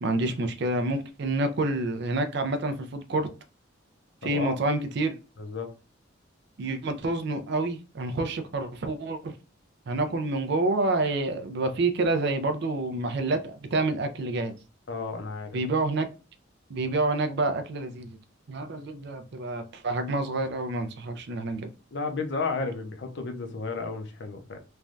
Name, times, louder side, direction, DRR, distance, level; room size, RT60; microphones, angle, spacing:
voice 1, 0.0-3.3 4.2-5.2 6.6-9.3 9.9-14.5 15.5-16.1 16.7-18.2 18.5-21.7, right 2 dB, 60° right, 0.4 m, -28 dB
voice 2, 4.2-4.6 5.4-5.7 14.9-15.7 21.9-24.6, left 4 dB, 60° left, 0.6 m, -33 dB
3.2 x 2.2 x 2.5 m
head